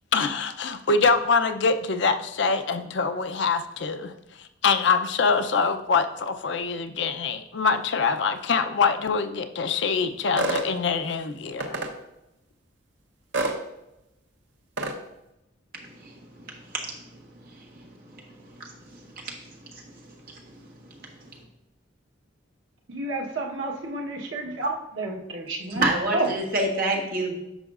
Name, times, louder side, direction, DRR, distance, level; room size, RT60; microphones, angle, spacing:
voice 1, 0.1-4.1 4.4-11.8, left 5 dB, 65° left, 8 dB, 0.6 m, -24 dB
sound 1, 10.4-10.7 11.6-11.9 13.3-13.6 14.8-15.0, right 2 dB, 65° right, 0.8 m, -26 dB
voice 2, 22.9-25.9 26.1-26.3, right 2 dB, 85° right, 0 dB, 1.2 m, -30 dB
voice 3, 25.7-27.4, right 2 dB, 50° right, 0 dB, 1.5 m, -26 dB
10.0 x 6.2 x 2.4 m, 0.90 s
head